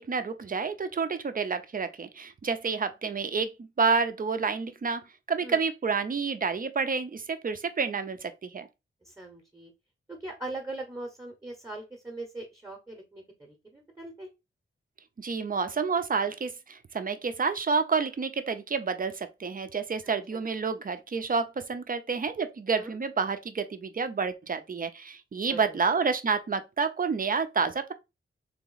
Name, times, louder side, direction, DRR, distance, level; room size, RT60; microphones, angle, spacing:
voice 1, 0.0-5.0 5.3-8.7 15.2-27.9, right 5 dB, 40° right, 0.6 m, -29 dB
voice 2, 9.0-9.7 10.1-14.3 20.3-20.4 22.7-23.0 25.4-25.9, right 2 dB, 15° right, 0.9 m, -41 dB
3.5 x 2.9 x 3.9 m
wide cardioid pair, 100°, 21 cm